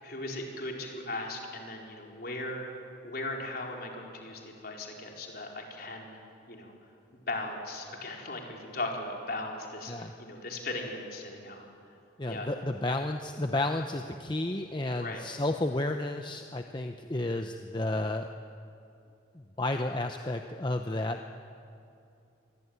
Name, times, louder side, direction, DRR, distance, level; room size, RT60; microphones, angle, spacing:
voice 1, 0.0-2.7 3.0-6.2 6.5-6.7 7.1-11.6 12.3-12.5 15.0-15.3, left 2 dB, 50° left, 0 dB, 4.5 m, -38 dB
voice 2, 12.2-18.3 19.3-21.2, left 2 dB, 25° left, 5 dB, 0.8 m, -32 dB
27.0 x 22.5 x 9.6 m, 2.6 s
head